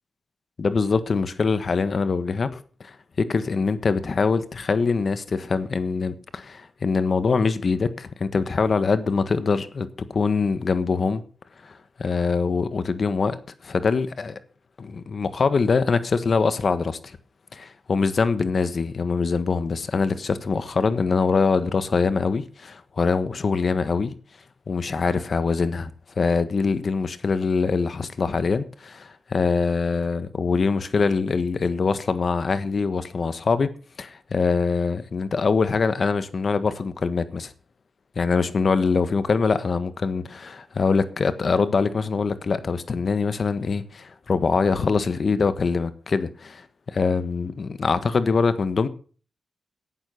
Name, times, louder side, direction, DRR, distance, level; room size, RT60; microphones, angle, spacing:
voice 1, 0.6-11.2 11.6-11.7 12.0-14.4 14.8-17.2 17.5-24.2 24.7-25.9 26.2-33.7 34.0-37.5 38.1-46.6 46.9-48.9, left 4 dB, 60° left, 1.4 m, -23 dB
11.5 x 9.1 x 5.9 m
cardioid pair, 60°, 0 cm